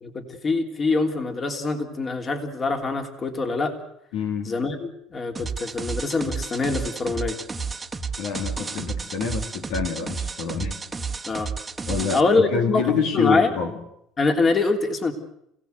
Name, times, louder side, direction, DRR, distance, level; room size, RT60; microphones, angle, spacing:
voice 1, 0.0-3.8 4.4-7.4 11.3-11.5 12.1-12.8 13.1-13.5 14.2-15.1, left 3 dB, 35° left, 4 dB, 3.3 m, -24 dB
voice 2, 4.1-4.5 8.2-10.7 11.9-13.8, left 6 dB, 75° left, 4 dB, 3.0 m, -26 dB
sound 1, 5.4-12.2, right 5 dB, 20° right, 1.5 m, -31 dB
28.0 x 17.0 x 8.1 m, 0.76 s
supercardioid pair, 95°, 0 cm